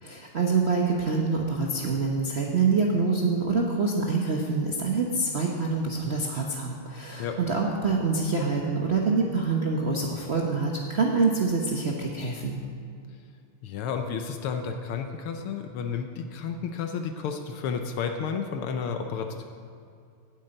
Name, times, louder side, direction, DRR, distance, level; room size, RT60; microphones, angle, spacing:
voice 1, 0.0-12.6, right 4 dB, 45° right, -1 dB, 0.9 m, -26 dB
voice 2, 13.6-19.4, left 6 dB, 80° left, 5 dB, 1.7 m, -32 dB
9.4 x 8.2 x 8.9 m, 2.4 s
omnidirectional pair, 2.4 m